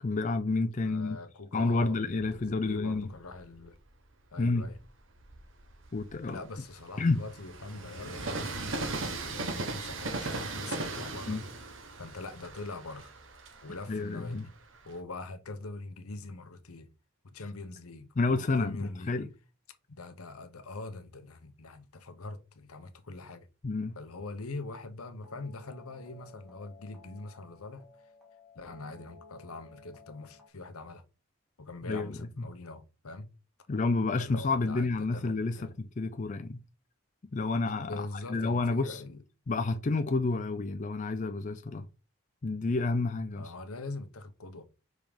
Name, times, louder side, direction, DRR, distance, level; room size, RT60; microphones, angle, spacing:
voice 1, 0.0-1.2 1.5-3.1 4.4-4.7 5.9-6.4 7.0-7.2 11.3-11.4 13.9-14.5 18.2-19.3 23.6-24.0 31.8-32.5 33.7-36.6 37.3-39.0 39.5-41.9 42.4-43.5, left 3 dB, 35° left, 0.4 m, -30 dB
voice 2, 0.8-3.8 4.3-4.8 6.3-11.4 12.0-13.1 13.6-14.5 14.8-16.9 17.3-19.2 19.9-23.5 24.0-27.9 28.5-31.0 31.6-33.3 34.2-35.7 37.8-39.2 43.3-44.6, left 2 dB, 90° left, 0.9 m, -43 dB
Train, 2.1-3.8 4.4-15.0, right 3 dB, 60° right, 1.0 m, -39 dB
sound 1, 25.2-30.5, left 4 dB, ahead, 1.5 m, -55 dB
5.1 x 3.7 x 5.1 m
head